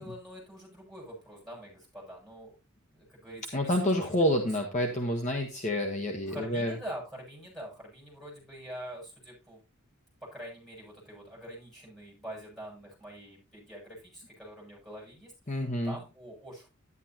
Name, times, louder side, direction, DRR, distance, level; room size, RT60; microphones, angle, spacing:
voice 1, 0.0-2.6 2.9-3.8 6.3-9.6 10.2-16.7, equal, ahead, -4 dB, 7.6 m, -45 dB
voice 2, 3.5-6.7 15.5-16.0, equal, 35° left, 1 dB, 1.3 m, -28 dB
11.0 x 11.0 x 2.9 m, 0.28 s
head